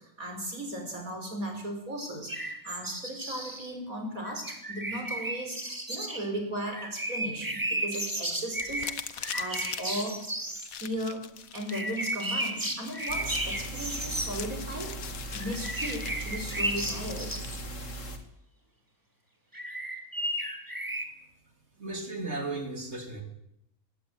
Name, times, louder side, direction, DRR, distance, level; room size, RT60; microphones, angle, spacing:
voice 1, 0.0-10.2 10.8-15.0 15.3-17.3, right 1 dB, 85° right, 3 dB, 6.2 m, -36 dB
sound 1, 2.3-3.7 4.3-6.3 6.6-10.7 11.7-14.3 15.3-17.6 19.5-21.0, right 1 dB, 15° right, 2.4 m, -34 dB
sound 2, 8.5-17.7, left 8 dB, 85° left, 1.6 m, -43 dB
sound 3, 13.1-18.2, right 2 dB, 65° left, 2.7 m, -39 dB
voice 2, 21.8-23.2, right 2 dB, 50° right, 3 dB, 4.0 m, -35 dB
19.0 x 17.0 x 9.2 m, 0.80 s
omnidirectional pair, 1.4 m